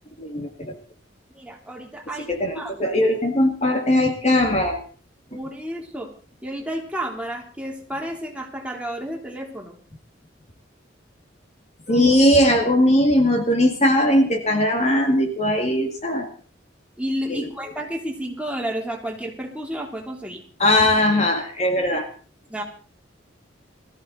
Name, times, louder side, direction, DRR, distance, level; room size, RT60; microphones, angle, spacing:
voice 1, 0.2-0.8 2.3-4.8 11.9-16.3 17.3-17.5 20.6-22.1, left 1 dB, 35° left, 4 dB, 2.0 m, -19 dB
voice 2, 1.3-2.3 2.5-3.0 5.3-6.1 6.4-9.8 11.9-12.1 17.0-20.4 22.5-22.6, right 1 dB, 5° right, 0 dB, 3.2 m, -31 dB
21.0 x 14.5 x 4.0 m, 0.39 s
head